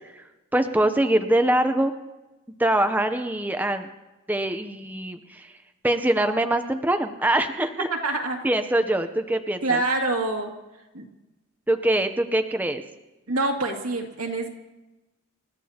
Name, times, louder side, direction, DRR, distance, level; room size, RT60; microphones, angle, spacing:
voice 1, 0.5-1.9 2.6-3.9 4.3-5.5 5.8-7.9 8.4-9.8 11.7-12.8, right 1 dB, 10° right, 7 dB, 0.6 m, -23 dB
voice 2, 7.9-8.4 9.6-10.5 10.9-11.0 13.3-14.5, right 2 dB, 85° right, 1 dB, 2.4 m, -26 dB
29.0 x 14.0 x 2.9 m, 1.0 s
head